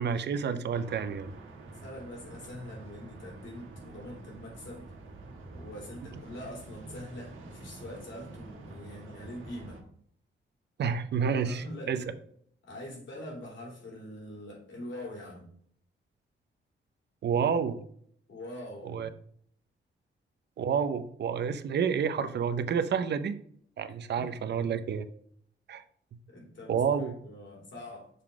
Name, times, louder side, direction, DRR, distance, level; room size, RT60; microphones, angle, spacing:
voice 1, 0.0-1.3 10.8-12.0 17.2-17.8 18.8-19.1 20.6-23.4 23.8-25.1 25.7-25.8 26.7-27.1, right 6 dB, 60° right, 11 dB, 0.6 m, -29 dB
sound 1, 0.7-9.8, right 2 dB, 85° right, 1.5 m, -47 dB
voice 2, 1.7-4.9 5.5-9.8 11.4-12.2 12.7-15.5 18.3-19.1 24.2-24.3 26.3-28.1, left 1 dB, 70° left, -3 dB, 3.1 m, -44 dB
6.6 x 3.8 x 4.7 m, 0.63 s
wide cardioid pair, 145°, 20 cm